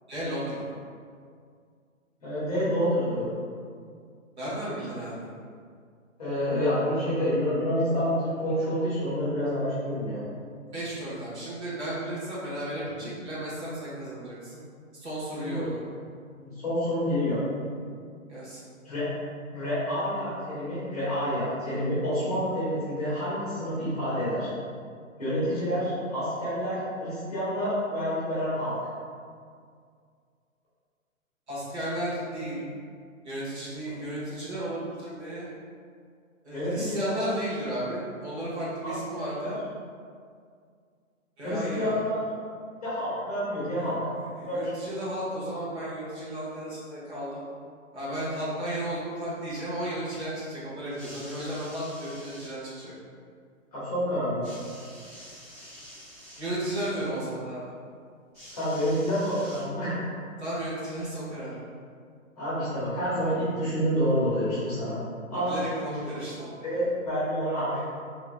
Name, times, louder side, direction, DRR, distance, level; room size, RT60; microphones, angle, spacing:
voice 1, 0.1-0.6 4.4-5.3 10.7-14.6 14.9-15.8 18.3-18.6 31.5-32.6 33.2-35.5 36.4-39.6 41.4-42.0 43.8-47.4 47.9-52.9 56.4-57.6 60.4-61.5 65.3-66.8, right 1 dB, 55° right, -8 dB, 1.3 m, -34 dB
voice 2, 2.2-3.3 6.2-10.2 15.4-15.6 16.3-17.4 18.8-19.1 19.5-24.5 25.2-28.7 36.5-37.1 38.8-39.5 41.4-42.2 42.8-44.0 44.5-44.6 53.7-54.5 58.5-60.0 62.4-65.0 65.3-65.6 66.0-66.1 66.6-67.8, equal, 30° left, -11 dB, 1.0 m, -28 dB
sound 1, 50.9-52.6 54.4-56.5 58.3-60.0 61.0-61.1, equal, 20° right, 1.0 m, -47 dB
3.5 x 2.9 x 2.2 m, 2.1 s
hypercardioid pair, 175°, 41 cm